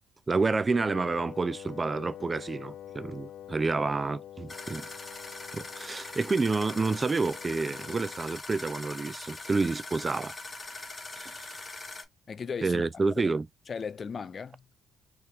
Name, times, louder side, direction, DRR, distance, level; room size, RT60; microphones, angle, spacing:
voice 1, 0.3-4.9 5.5-10.3 11.2-11.6 12.6-13.5, right 3 dB, 30° right, 0.3 m, -29 dB
Wind instrument woodwind instrument, 0.7-8.3, left 10 dB, 70° left, 0.8 m, -46 dB
sound 1, 4.5-12.0, left 3 dB, 25° left, 1.2 m, -42 dB
voice 2, 12.3-13.3 13.7-14.7, left 6 dB, 45° left, 0.4 m, -37 dB
3.4 x 3.1 x 3.2 m
cardioid pair, 90°, 0 cm